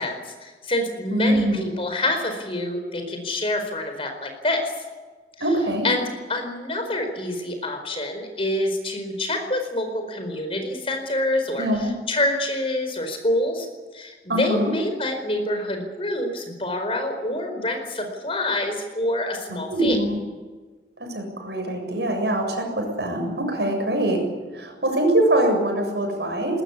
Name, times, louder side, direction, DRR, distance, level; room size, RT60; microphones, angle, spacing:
voice 1, 0.0-4.7 5.8-13.7 13.9-20.0, left 1 dB, 30° left, 5 dB, 4.6 m, -26 dB
voice 2, 1.1-1.6 5.4-5.9 11.6-11.9 14.3-14.7 19.7-20.2 21.0-24.2 24.5-26.6, right 1 dB, 70° right, 3 dB, 7.4 m, -23 dB
21.5 x 20.0 x 8.5 m, 1.4 s
head